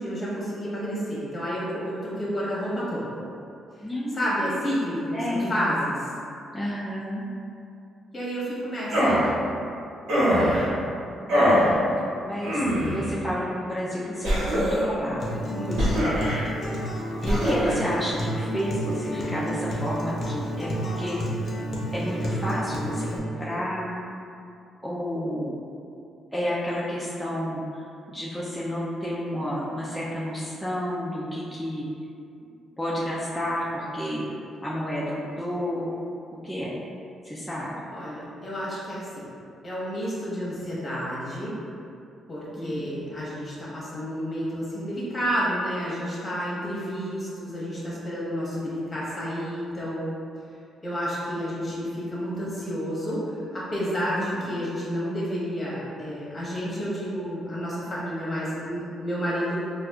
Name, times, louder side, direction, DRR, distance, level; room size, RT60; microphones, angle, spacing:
voice 1, 0.0-3.1 3.7-3.9 4.1-6.0 8.1-9.1 15.5-16.1 37.9-39.3 39.6-41.5 42.3-50.0 50.8-59.6, equal, 25° left, -8 dB, 1.2 m, -30 dB
voice 2, 3.8-4.6 5.1-5.7 6.5-7.2 11.1-11.8 12.2-15.4 16.0-16.2 17.2-21.2 21.9-24.0 24.8-25.6 26.3-31.9 32.8-34.3 34.6-35.9 36.4-36.8 37.2-37.7 42.6-42.9 54.2-54.6, equal, 5° left, -8 dB, 0.4 m, -31 dB
sound 1, 8.9-9.3 10.1-10.7 11.3-11.7 12.4-13.1 14.2-14.9 15.8-16.4 17.2-17.7, equal, 90° right, 1.2 m, -22 dB
Acoustic guitar, 15.2-23.2, equal, 45° left, 0.6 m, -30 dB
4.0 x 2.4 x 2.3 m, 2.6 s
cardioid pair, 90°, 0 cm